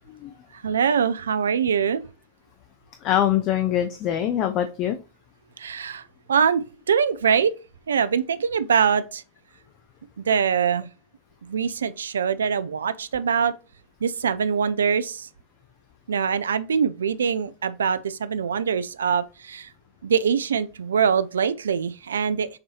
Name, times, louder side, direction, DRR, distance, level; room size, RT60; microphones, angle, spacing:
voice 1, 0.6-2.0 5.6-6.0 6.3-7.5 7.9-9.2 10.3-10.9 11.4-13.5 14.0-15.3 16.1-19.7 20.0-22.5, right 7 dB, 70° right, 0.3 m, -23 dB
voice 2, 3.0-5.0, left 11 dB, 40° left, 0.4 m, -23 dB
6.5 x 2.7 x 2.9 m
figure-of-eight pair, 90°, 0 cm